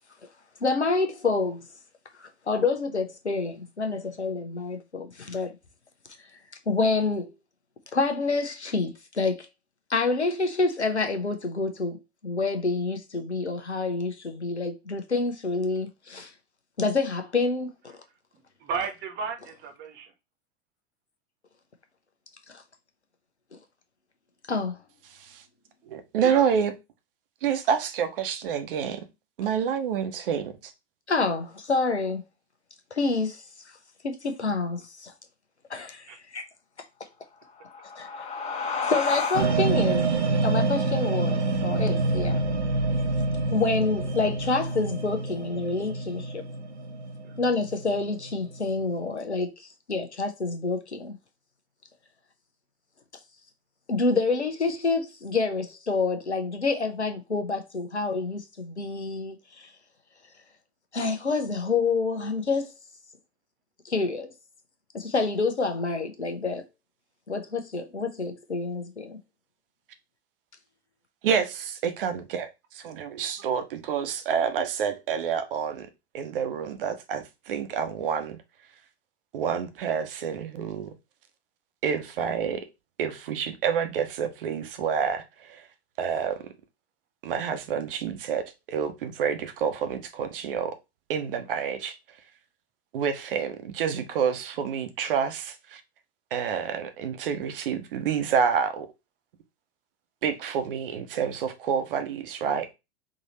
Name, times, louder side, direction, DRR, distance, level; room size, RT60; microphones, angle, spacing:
voice 1, 0.6-1.6 2.2-5.6 6.7-7.3 7.9-9.5 9.9-16.3 16.8-18.0 22.5-22.6 24.5-24.8 31.1-32.2 32.9-33.5 34.0-35.1 35.7-36.4 37.9-38.1 38.9-40.1 40.4-42.4 43.5-46.4 47.4-51.2 53.9-59.7 60.9-62.7 63.8-64.3 64.9-66.6 67.3-69.2, left 3 dB, 85° left, 0.9 m, -28 dB
voice 2, 18.6-20.1 26.2-26.4 36.1-36.2 47.2-47.4, right 5 dB, 35° right, 1.1 m, -34 dB
voice 3, 25.9-26.7 27.4-29.1 29.4-30.7 71.2-75.9 76.1-78.4 79.3-80.9 81.8-82.7 83.0-85.7 86.0-86.5 87.2-90.7 91.1-92.0 92.9-95.8 96.3-98.9 100.2-102.7, right 7 dB, 55° right, 0.9 m, -28 dB
sound 1, 37.5-42.6, left 5 dB, 20° left, 1.2 m, -34 dB
sound 2, 39.3-49.0, right 3 dB, 80° right, 0.8 m, -27 dB
3.8 x 3.0 x 4.1 m
figure-of-eight pair, 90°, 33 cm